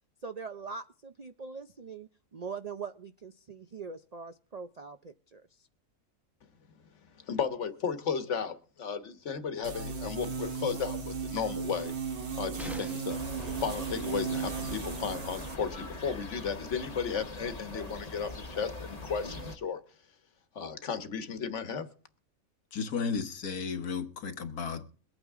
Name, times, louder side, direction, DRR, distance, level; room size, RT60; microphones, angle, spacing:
voice 1, 0.2-5.7, right 5 dB, 55° right, 0.4 m, -42 dB
voice 2, 7.3-11.9 12.4-13.2 13.6-19.8 20.5-21.9, left 6 dB, 55° left, 1.5 m, -34 dB
sound 1, 9.6-15.5, right 6 dB, 90° right, 2.2 m, -36 dB
sound 2, 12.6-13.3 15.3-15.4 15.7-15.8, equal, ahead, 0.8 m, -44 dB
sound 3, 13.1-19.6, left 2 dB, 30° left, 1.1 m, -42 dB
voice 3, 22.7-24.9, left 5 dB, 90° left, 1.7 m, -34 dB
22.5 x 8.9 x 3.6 m
omnidirectional pair, 1.5 m